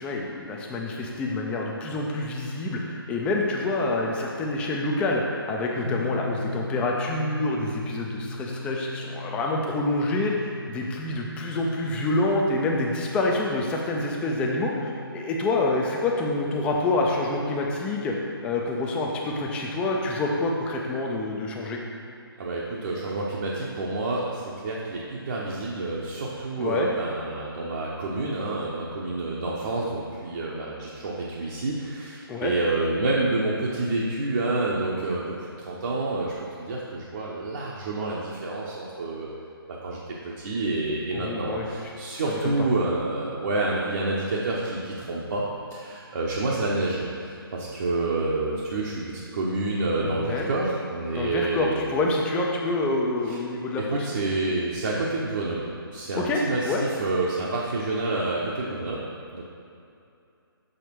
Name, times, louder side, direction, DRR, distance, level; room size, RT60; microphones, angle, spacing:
voice 1, 0.0-18.2 18.4-21.8 26.6-26.9 32.3-32.5 41.1-41.7 42.3-42.5 50.0-50.5 51.1-54.1 56.2-56.8, left 2 dB, 10° left, -1 dB, 0.4 m, -27 dB
sound 1, 5.8-18.7, left 2 dB, 90° left, 0.6 m, -39 dB
voice 2, 22.4-35.2 35.6-39.3 39.7-49.0 49.3-51.8 53.3-53.4 53.8-59.0 59.3-59.4, right 2 dB, 45° right, -5 dB, 0.9 m, -28 dB
6.5 x 4.9 x 4.6 m, 2.6 s
figure-of-eight pair, 145°, 13 cm